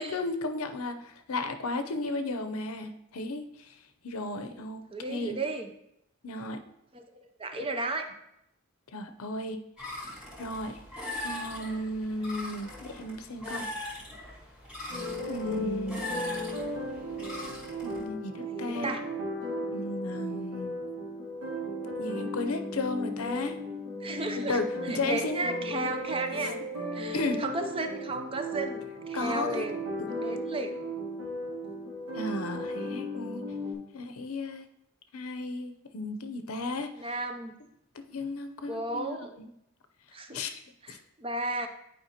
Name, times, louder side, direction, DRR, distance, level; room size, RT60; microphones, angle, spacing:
voice 1, 0.0-3.7 4.0-4.8 5.1-5.4 6.2-6.6 7.6-7.7 8.9-9.6 10.4-10.8 11.2-13.6 15.3-16.0 17.8-19.0 19.7-20.8 22.0-23.6 24.4-25.4 25.7-25.9 27.1-27.4 29.1-29.7 30.0-30.1 32.1-33.4 33.9-34.6 35.1-36.9 37.9-39.5 40.3-40.6 40.9-41.0, left 2 dB, 90° left, 7 dB, 0.7 m, -34 dB
voice 2, 4.9-5.7 6.9-7.1 7.4-8.1 18.4-19.0 24.0-26.6 26.9-29.8 30.2-30.8 36.9-37.5 38.7-39.3 40.1-40.4 40.8-41.7, right 2 dB, 25° right, 6 dB, 0.5 m, -34 dB
sound 1, 9.8-18.0, left 1 dB, 5° right, 1.7 m, -40 dB
sound 2, 14.9-33.7, equal, 75° right, 2.1 m, -36 dB
9.9 x 4.7 x 2.9 m, 0.80 s
head